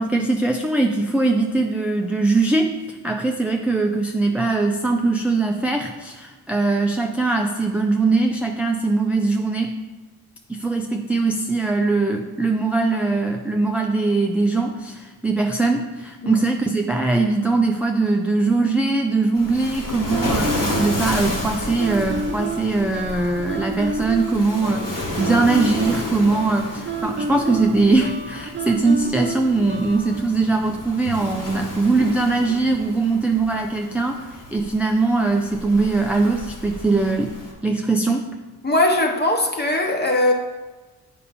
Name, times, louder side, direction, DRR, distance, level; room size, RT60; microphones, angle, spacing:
voice 1, 0.0-9.7 10.5-20.5 20.8-37.3 37.6-38.3, right 3 dB, 5° right, 2 dB, 0.4 m, -21 dB
Waves surf, 19.3-37.5, left 1 dB, 60° left, 1.8 m, -32 dB
sound 1, 20.1-30.2, right 3 dB, 30° right, 0.8 m, -30 dB
voice 2, 38.6-40.3, left 1 dB, 25° left, 3 dB, 1.1 m, -19 dB
8.1 x 5.5 x 4.2 m, 1.2 s
wide cardioid pair, 110°, 38 cm